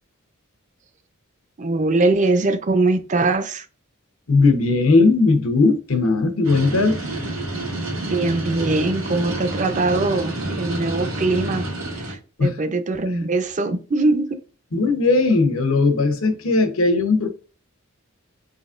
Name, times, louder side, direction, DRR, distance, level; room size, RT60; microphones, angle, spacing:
voice 1, 1.6-3.7 8.0-10.3 10.6-11.6 12.0-14.3, right 2 dB, 35° right, 0.5 m, -21 dB
voice 2, 4.3-7.0 12.4-12.5 14.7-17.3, left 3 dB, 75° left, 0.9 m, -18 dB
sound 1, 6.4-12.2, right 2 dB, 75° right, 1.6 m, -28 dB
4.3 x 3.9 x 2.5 m
head